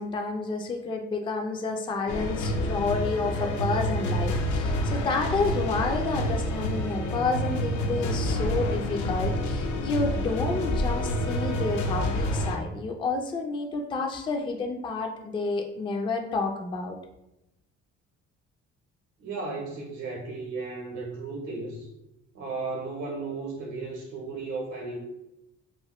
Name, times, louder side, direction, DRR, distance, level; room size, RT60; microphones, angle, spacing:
voice 1, 0.0-17.0, left 3 dB, 15° left, 3 dB, 0.3 m, -30 dB
sound 1, 2.1-12.6, left 1 dB, 75° left, 0.5 m, -28 dB
voice 2, 19.2-21.9 22.3-25.0, right 3 dB, 70° right, -2 dB, 0.8 m, -35 dB
3.0 x 2.1 x 2.9 m, 0.89 s
cardioid pair, 90°, 30 cm